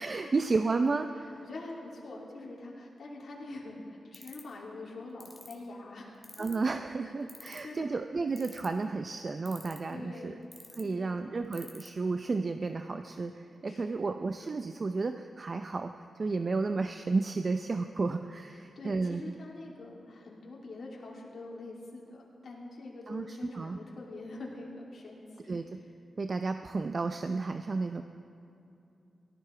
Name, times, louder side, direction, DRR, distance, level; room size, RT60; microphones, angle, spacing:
voice 1, 0.0-1.4 6.4-10.4 10.8-19.2 23.1-23.8 25.5-25.8 26.2-28.0, right 3 dB, 50° right, 7 dB, 0.5 m, -32 dB
voice 2, 1.4-6.5 7.0-7.1 7.4-7.9 9.9-10.4 10.8-11.2 13.7-14.1 18.5-25.5, left 2 dB, 65° left, -4 dB, 2.8 m, -45 dB
sound 1, 4.1-4.5 5.2-5.5 6.2-6.7 7.3-7.8 8.4-8.8 9.5-9.9 10.5-10.8 11.5-11.9, left 1 dB, 10° left, 2.1 m, -47 dB
18.0 x 14.0 x 3.3 m, 2.7 s
cardioid pair, 55°, 0 cm